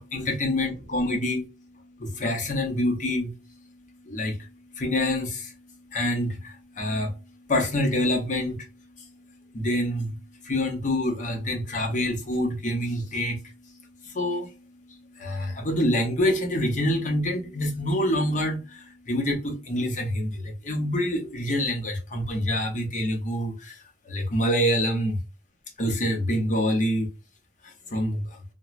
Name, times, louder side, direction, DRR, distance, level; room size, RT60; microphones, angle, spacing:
voice 1, 0.0-1.5 1.8-3.6 4.0-5.6 5.9-8.7 9.0-9.1 9.5-23.8 24.1-25.2 25.8-27.1 27.6-28.2, left 1 dB, 40° left, 0.7 m, -27 dB
3.0 x 2.2 x 2.4 m
head